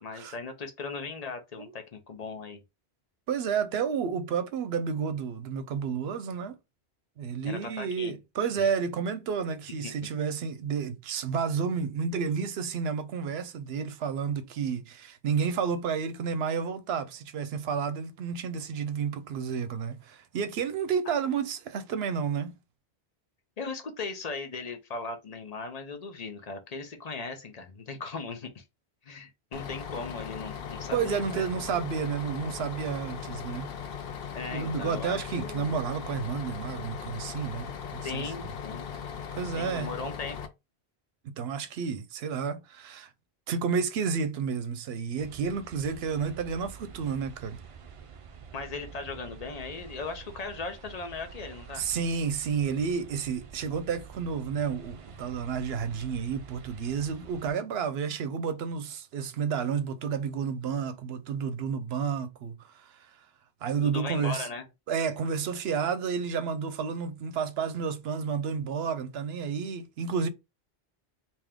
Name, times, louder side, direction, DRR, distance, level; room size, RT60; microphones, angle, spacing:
voice 1, 0.0-2.6 7.4-8.2 8.6-8.7 9.8-9.9 23.6-28.6 29.0-31.4 34.3-35.7 38.0-38.9 39.6-40.4 48.5-51.8 63.8-64.6, left 4 dB, 40° left, 0.8 m, -38 dB
voice 2, 3.3-6.6 7.2-22.6 30.9-33.7 34.5-38.3 39.3-40.0 41.2-43.1 43.5-47.6 51.7-63.3 63.6-64.5 64.9-70.3, right 6 dB, 75° right, 0.8 m, -31 dB
Bus, 29.5-40.5, left 7 dB, 65° left, 0.8 m, -39 dB
sound 1, 45.2-57.5, right 6 dB, 50° right, 0.4 m, -48 dB
3.5 x 2.8 x 3.4 m
omnidirectional pair, 1.1 m